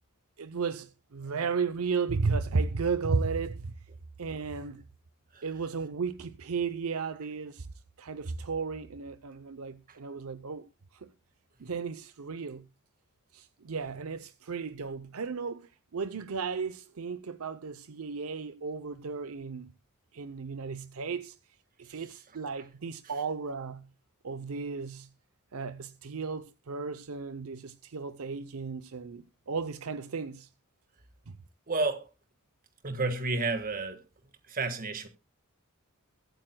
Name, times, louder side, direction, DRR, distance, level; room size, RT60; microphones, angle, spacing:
voice 1, 0.4-3.7 4.2-4.8 5.4-7.7 8.0-11.1 11.6-12.7 13.3-19.7 20.1-21.4 21.8-23.9 24.2-25.1 25.5-30.5 31.3-31.4, right 5 dB, 75° right, 0.7 m, -34 dB
voice 2, 31.7-32.1 32.8-34.0 34.5-35.1, right 3 dB, 40° right, 1.6 m, -30 dB
22.5 x 9.0 x 2.2 m
head